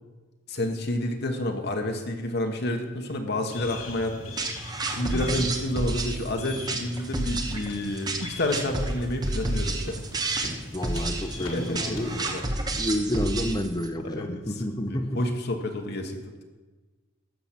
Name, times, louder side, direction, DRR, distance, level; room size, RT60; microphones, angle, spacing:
voice 1, 0.5-4.3 4.9-10.0 11.5-12.8 14.0-14.4 14.9-16.4, left 1 dB, 55° left, 4 dB, 1.2 m, -30 dB
sound 1, 3.5-12.4, left 2 dB, 85° left, 1.5 m, -41 dB
sound 2, 3.8-3.9 4.3-4.5 4.9-5.0 5.5-5.6 6.0-6.1 6.5-6.7 7.1-7.3 7.6-7.8 8.3-8.4 8.8-8.9 9.3-9.5 9.9-10.0 10.4-10.6 10.9-11.1 11.4-11.6 11.9-12.1, left 1 dB, 70° left, 1.9 m, -42 dB
sound 3, 4.4-13.9, right 2 dB, 20° right, 1.0 m, -30 dB
voice 2, 5.1-5.5 10.7-15.2, equal, 20° left, 8 dB, 0.7 m, -30 dB
13.0 x 6.9 x 6.0 m, 1.3 s
head